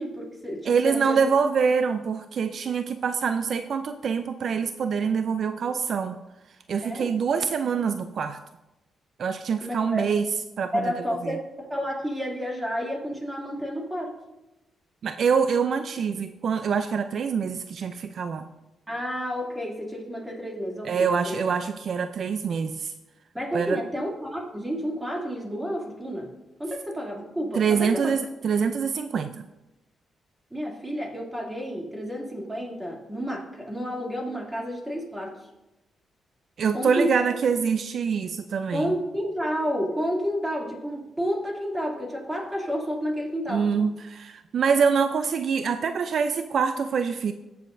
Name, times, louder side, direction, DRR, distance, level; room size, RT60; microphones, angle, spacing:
voice 1, 0.0-1.2 6.8-7.1 9.6-10.1 10.7-14.2 18.9-21.4 23.3-26.3 26.6-28.1 30.5-35.5 36.7-37.3 38.7-43.7, equal, 10° right, -1 dB, 2.6 m, -30 dB
voice 2, 0.7-6.2 6.7-8.4 9.2-10.3 10.6-10.9 11.2-11.4 15.0-18.5 20.8-22.9 23.5-23.8 27.6-29.5 36.6-38.9 43.5-47.3, right 6 dB, 60° right, 9 dB, 0.4 m, -25 dB
17.0 x 7.0 x 2.6 m, 1.0 s
cardioid pair, 90°, 0 cm